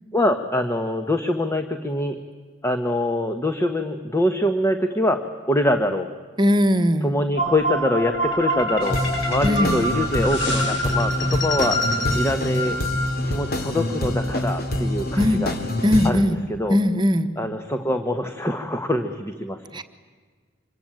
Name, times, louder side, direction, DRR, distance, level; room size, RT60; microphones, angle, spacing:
voice 1, 0.1-2.2 2.6-5.2 5.5-6.1 7.0-9.0 9.3-11.8 12.1-12.8 13.2-15.5 16.0-16.8 17.4-19.6, left 1 dB, 15° left, 7 dB, 1.2 m, -24 dB
voice 2, 6.4-7.1 9.4-9.8 15.2-15.4 15.8-16.4 16.7-17.3 19.7-19.8, left 1 dB, 25° right, 7 dB, 1.3 m, -19 dB
sound 1, 7.4-13.5, equal, 70° left, 7.0 m, -26 dB
sound 2, 8.8-16.1, left 1 dB, 55° left, 2.8 m, -26 dB
26.0 x 23.0 x 9.1 m, 1.5 s
head